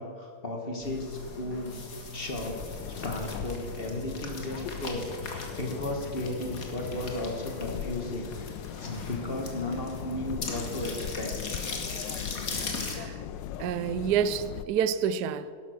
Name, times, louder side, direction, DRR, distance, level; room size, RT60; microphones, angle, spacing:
voice 1, 0.0-1.8 2.1-8.5 8.8-11.3, left 1 dB, 30° left, 2 dB, 1.6 m, -35 dB
sound 1, 0.8-13.0, left 3 dB, 45° left, 2.0 m, -39 dB
sound 2, 2.3-14.6, left 9 dB, 75° left, 1.2 m, -39 dB
voice 2, 12.5-13.2 13.6-15.5, right 8 dB, 70° right, 14 dB, 1.0 m, -29 dB
12.0 x 11.0 x 6.4 m, 2.1 s
omnidirectional pair, 2.2 m